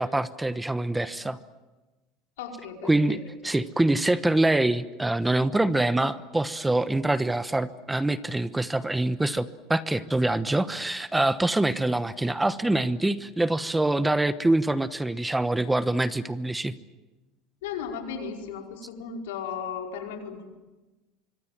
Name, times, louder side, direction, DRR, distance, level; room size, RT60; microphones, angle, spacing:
voice 1, 0.0-1.4 2.8-16.7, right 2 dB, 10° right, 13 dB, 1.0 m, -25 dB
voice 2, 2.4-3.2 17.6-20.5, left 6 dB, 90° left, 2 dB, 5.0 m, -36 dB
25.0 x 25.0 x 7.5 m, 1.1 s
supercardioid pair, 115°, 0 cm